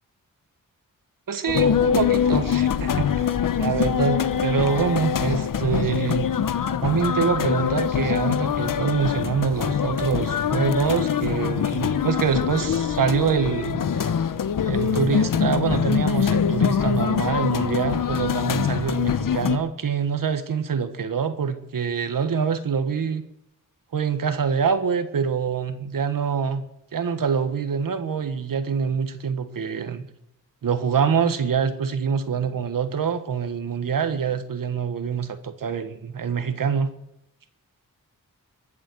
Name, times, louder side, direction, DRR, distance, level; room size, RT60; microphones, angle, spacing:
voice 1, 1.3-3.3 3.6-6.3 6.8-14.1 14.6-23.2 23.9-26.6 26.9-30.0 30.6-36.9, right 6 dB, 85° right, 10 dB, 1.6 m, -25 dB
sound 1, 1.5-19.6, left 8 dB, 80° left, 1.0 m, -24 dB
22.5 x 7.6 x 8.0 m, 0.80 s
wide cardioid pair, 85°, 33 cm